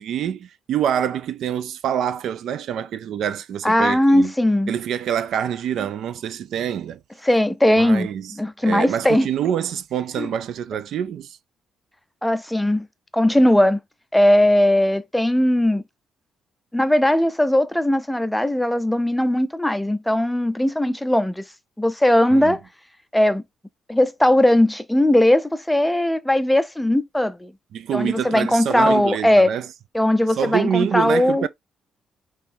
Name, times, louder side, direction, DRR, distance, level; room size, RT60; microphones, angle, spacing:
voice 1, 0.0-4.3 4.7-7.0 7.8-8.3 8.6-11.4 22.3-22.6 27.7-29.7 30.4-31.5, right 9 dB, 65° right, 0.5 m, -26 dB
voice 2, 3.6-4.7 7.2-9.3 10.2-10.3 12.2-12.9 13.1-13.8 14.1-15.8 16.7-21.4 21.8-22.6 23.1-23.4 23.9-27.5 27.9-29.5 29.9-31.5, left 1 dB, 5° left, 0.5 m, -19 dB
5.3 x 3.1 x 2.7 m
cardioid pair, 140°, 0 cm